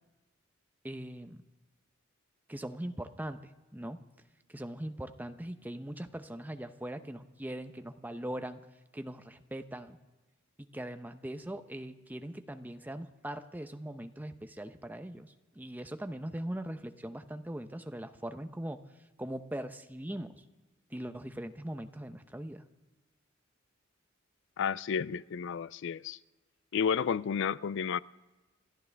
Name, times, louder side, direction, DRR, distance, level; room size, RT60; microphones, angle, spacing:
voice 1, 0.8-1.4 2.5-4.0 4.5-8.6 8.9-10.0 10.6-18.8 19.2-20.4 20.9-22.6, right 1 dB, 10° right, 0.7 m, -41 dB
voice 2, 24.6-26.2 26.7-28.0, left 7 dB, 60° left, 0.4 m, -31 dB
28.0 x 12.5 x 3.4 m
head